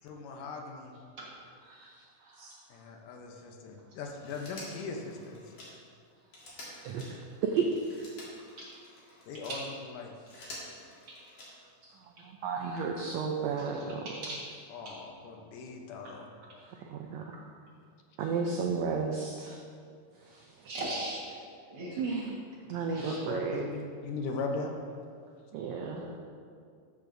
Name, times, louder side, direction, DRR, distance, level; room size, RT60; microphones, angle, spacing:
voice 1, 0.0-1.0 2.7-5.4 9.3-10.1 14.7-16.3 22.6-24.8, left 4 dB, 80° left, 2 dB, 2.3 m, -39 dB
voice 2, 1.7-2.0 2.3-2.5 6.8-7.1 7.5-7.7 11.8-11.9 12.2-14.1 16.8-17.3 18.2-19.6 20.3-20.7 22.0-22.3 22.7-23.6 25.5-26.1, right 5 dB, 85° right, 1 dB, 1.5 m, -33 dB
Telephone, 4.2-9.6 10.1-11.8 13.1-13.2, left 1 dB, 50° left, 2.7 m, -49 dB
voice 3, 13.6-14.4 14.8-15.0 17.3-17.4 20.6-21.4 21.7-22.0 22.9-23.3 25.8-26.2, right 1 dB, 50° right, -6 dB, 2.1 m, -40 dB
13.5 x 6.9 x 2.6 m, 2.2 s
omnidirectional pair, 3.7 m